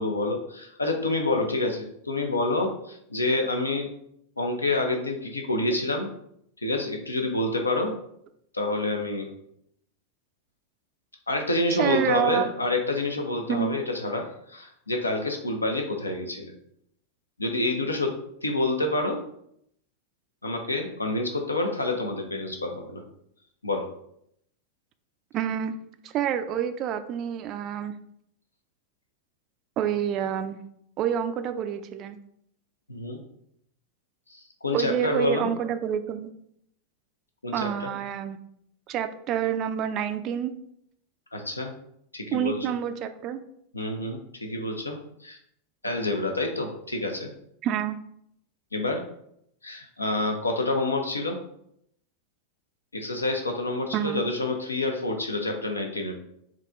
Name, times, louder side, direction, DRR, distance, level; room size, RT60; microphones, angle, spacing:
voice 1, 0.0-3.9 4.4-6.1 6.6-8.0 8.5-9.3 11.3-16.5 17.4-19.2 20.4-23.0 23.6-23.9 32.9-33.2 34.3-35.5 37.4-37.9 41.3-41.7 42.1-42.6 43.7-45.4 45.8-47.3 48.7-49.0 49.6-51.4 52.9-56.2, left 2 dB, 80° left, 3 dB, 0.7 m, -28 dB
voice 2, 11.8-12.5 13.5-13.7 25.3-25.7 26.0-27.9 29.8-30.6 31.0-32.2 34.7-36.3 37.5-38.4 38.9-40.5 42.3-43.4 47.6-48.0 53.9-54.2, right 9 dB, 35° right, 10 dB, 0.4 m, -28 dB
4.8 x 2.9 x 3.5 m, 0.73 s
figure-of-eight pair, 90°, 0 cm